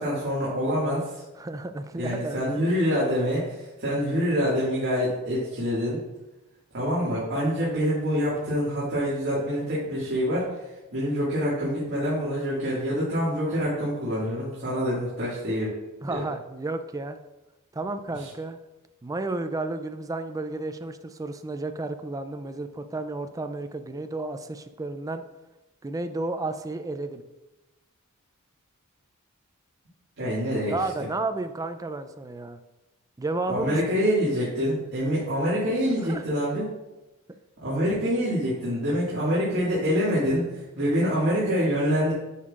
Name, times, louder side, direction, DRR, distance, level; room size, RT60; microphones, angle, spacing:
voice 1, 0.0-1.2 2.0-6.0 6.7-10.5 10.9-15.7 16.1-16.2 18.2-18.3 30.2-30.7 33.5-36.6 37.6-42.1, equal, 50° right, -9 dB, 2.1 m, -26 dB
voice 2, 1.4-2.4 16.0-17.2 17.7-18.6 19.0-25.2 25.8-27.2 30.7-32.6 33.2-34.0 36.0-36.2, right 2 dB, 15° right, 8 dB, 0.4 m, -32 dB
9.5 x 5.5 x 2.5 m, 1.0 s
head